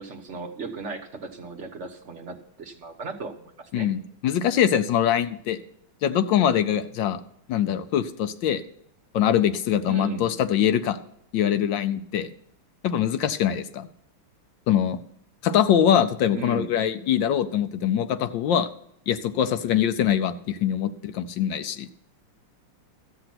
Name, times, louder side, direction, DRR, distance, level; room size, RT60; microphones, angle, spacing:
voice 1, 0.0-3.9 9.9-10.3 16.3-16.8, right 3 dB, 40° right, 3 dB, 1.1 m, -36 dB
voice 2, 3.7-5.6 6.0-7.2 7.5-8.6 9.1-11.0 11.3-12.3 12.8-13.9 14.7-15.0 15.4-18.7 19.1-21.9, left 9 dB, 70° left, 10 dB, 1.2 m, -23 dB
13.5 x 7.8 x 5.8 m, 0.71 s
omnidirectional pair, 2.4 m